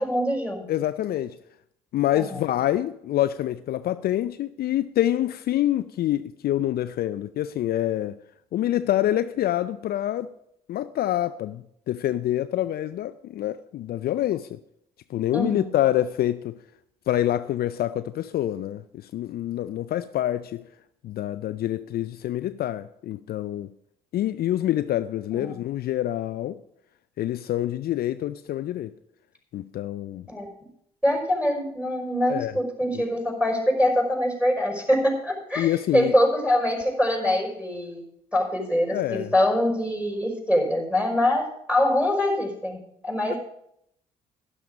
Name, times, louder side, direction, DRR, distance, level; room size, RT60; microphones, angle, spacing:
voice 1, 0.0-0.6 2.1-2.4 15.3-15.7 25.3-25.5 30.3-30.5 31.0-38.0 38.3-43.4, left 1 dB, 5° right, 5.4 m, -24 dB
voice 2, 0.7-1.4 1.9-8.1 8.5-10.3 10.7-14.6 15.1-16.5 17.1-18.8 19.1-20.6 21.0-23.7 24.1-26.6 27.2-28.9 29.5-30.3 32.3-32.5 32.9-33.0 35.6-36.1 38.9-39.3 43.3-43.4, left 13 dB, 55° left, 0.5 m, -26 dB
12.0 x 11.0 x 5.1 m
hypercardioid pair, 50°, 19 cm